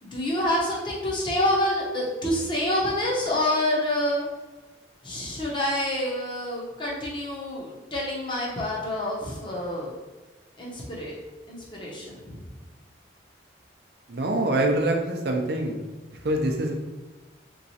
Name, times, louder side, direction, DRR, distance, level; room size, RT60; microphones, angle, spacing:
voice 1, 0.0-4.3 5.0-9.9 10.6-11.1 11.5-12.4, left 1 dB, 25° left, -4 dB, 0.7 m, -27 dB
voice 2, 14.1-15.8 16.2-16.7, right 1 dB, 60° right, 2 dB, 0.5 m, -24 dB
3.5 x 3.0 x 2.8 m, 1.2 s
head